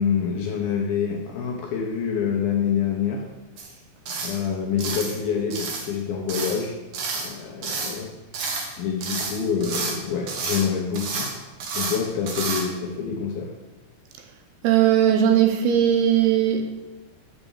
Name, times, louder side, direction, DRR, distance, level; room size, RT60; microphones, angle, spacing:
voice 1, 0.0-3.3 4.2-6.8 7.1-8.2 8.8-13.5, left 7 dB, 75° left, 1 dB, 2.3 m, -26 dB
sound 1, 3.6-3.7 4.1-4.4 4.8-5.2 5.5-5.9 6.3-6.6 6.9-7.3 7.6-8.0 8.3-8.7 9.0-10.0 10.3-10.7 10.9-11.3 11.6-12.0 12.3-12.6, right 4 dB, 65° right, 2.2 m, -30 dB
voice 2, 14.6-16.8, right 10 dB, 80° right, 4 dB, 2.5 m, -19 dB
7.1 x 6.8 x 7.1 m, 1.2 s
omnidirectional pair, 5.0 m